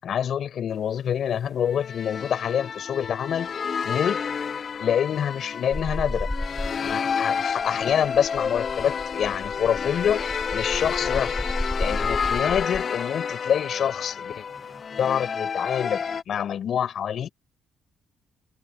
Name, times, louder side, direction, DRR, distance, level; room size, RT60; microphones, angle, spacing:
voice 1, 0.0-3.5 3.8-4.2 4.8-6.3 6.8-10.2 10.5-11.3 11.8-14.5 15.0-17.3, left 9 dB, 65° left, 5.6 m, -26 dB
sound 1, 1.6-16.2, left 6 dB, 45° left, 0.8 m, -30 dB
sound 2, 5.7-7.1 7.4-12.8 14.6-15.0, left 1 dB, 10° left, 1.1 m, -32 dB
cardioid pair, 90°, 0 cm